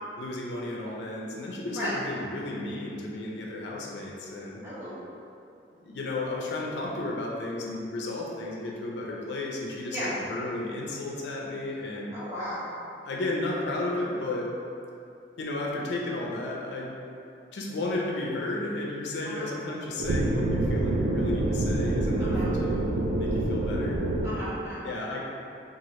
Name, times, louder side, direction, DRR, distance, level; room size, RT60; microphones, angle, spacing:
voice 1, 0.2-4.6 5.8-12.1 13.0-14.5 15.4-17.0 17.5-24.0 24.8-25.2, left 2 dB, 70° left, -2 dB, 0.4 m, -33 dB
voice 2, 4.6-5.0 9.9-10.1 12.1-12.7 19.2-19.5 22.2-22.5 24.2-24.8, equal, 15° right, -12 dB, 0.9 m, -35 dB
sound 1, 20.0-24.3, right 2 dB, 85° right, 0.3 m, -26 dB
2.9 x 2.3 x 3.0 m, 2.6 s
head